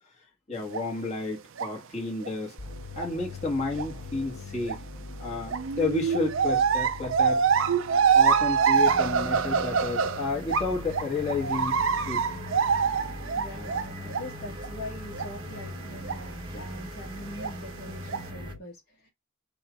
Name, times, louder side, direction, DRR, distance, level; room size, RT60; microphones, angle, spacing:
voice 1, 0.5-2.5 2.9-4.8 5.2-7.4 8.1-11.8 12.1-12.3, left 3 dB, 30° left, 1.6 m, -31 dB
sound 1, 0.7-0.8 1.6-1.7 2.2-2.3 3.0-3.1 3.8-3.9 4.7-4.8 5.5-10.7 10.9-14.3 14.6-14.7 15.1-15.2 16.0-16.2 17.4-17.5 18.1-18.2, right 6 dB, 65° right, 0.5 m, -25 dB
sound 2, 2.6-18.6, left 4 dB, 85° left, 1.1 m, -43 dB
sound 3, 8.7-18.5, right 2 dB, 20° right, 0.9 m, -42 dB
voice 2, 13.3-19.1, left 1 dB, 50° left, 1.4 m, -42 dB
5.9 x 2.5 x 3.4 m
head